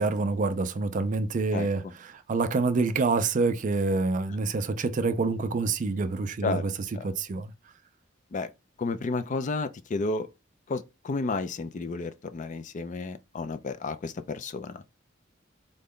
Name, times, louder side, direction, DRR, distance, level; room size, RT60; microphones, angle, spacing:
voice 1, 0.0-6.7 7.0-7.5, right 3 dB, 40° right, 0.4 m, -27 dB
voice 2, 8.8-10.3 10.7-14.8, left 3 dB, 40° left, 0.4 m, -31 dB
3.8 x 2.2 x 3.6 m
head